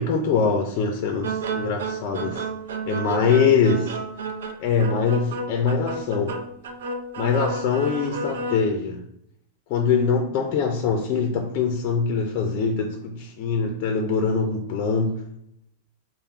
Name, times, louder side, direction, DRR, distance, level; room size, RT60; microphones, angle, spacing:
voice 1, 0.0-2.5 2.9-4.0 4.6-6.4 7.2-9.0 9.7-15.2, left 5 dB, 35° left, 4 dB, 0.4 m, -23 dB
sound 1, 1.2-8.6, right 3 dB, 85° right, 0.5 m, -31 dB
3.6 x 2.0 x 4.3 m, 0.75 s
supercardioid pair, 170°, 0 cm